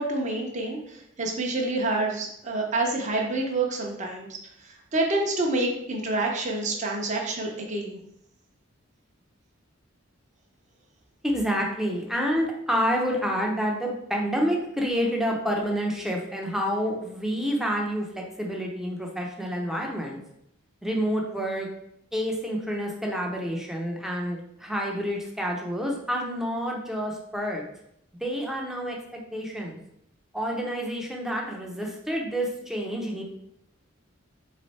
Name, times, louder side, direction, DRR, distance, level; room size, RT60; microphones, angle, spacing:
voice 1, 0.0-8.0, right 2 dB, 35° right, 0 dB, 0.7 m, -28 dB
voice 2, 11.2-20.2 20.8-21.7 22.1-27.6 28.2-29.8 30.3-33.2, equal, ahead, -1 dB, 0.7 m, -28 dB
3.9 x 3.2 x 4.1 m, 0.77 s
head